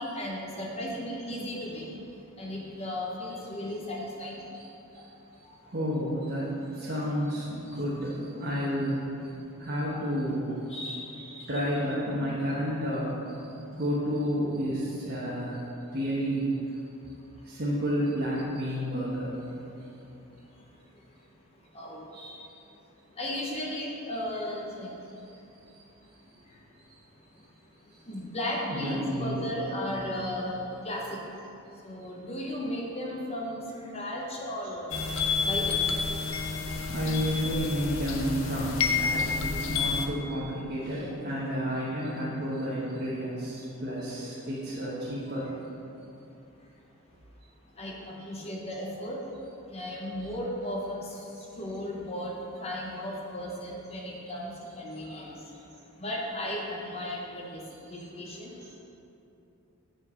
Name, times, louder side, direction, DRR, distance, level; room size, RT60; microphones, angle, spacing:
voice 1, 0.0-4.5 4.9-5.1 5.4-5.6 7.7-7.8 9.3-9.4 9.8-10.0 10.7-11.5 17.4-17.5 19.7-19.8 20.5-20.7 20.9-21.1 21.7-22.1 23.1-25.1 26.4-26.6 28.1-31.2 31.8-35.8 45.9-46.0 47.8-49.3 49.7-55.5 56.0-58.7, left 1 dB, 30° left, -2 dB, 0.8 m, -36 dB
voice 2, 4.2-4.7 4.9-5.0 5.7-6.5 6.8-8.1 8.4-9.0 9.6-10.6 11.1-15.6 15.9-16.5 17.4-19.3 22.1-22.4 23.6-23.8 24.1-24.2 28.6-29.5 29.9-30.0 34.6-34.7 36.9-45.5 50.2-50.3 55.1-55.2 56.8-56.9 58.2-58.3, equal, 45° right, -8 dB, 1.1 m, -31 dB
sound 1, 34.9-40.1, left 5 dB, 65° left, 0.6 m, -29 dB
7.5 x 4.9 x 5.0 m, 2.9 s
head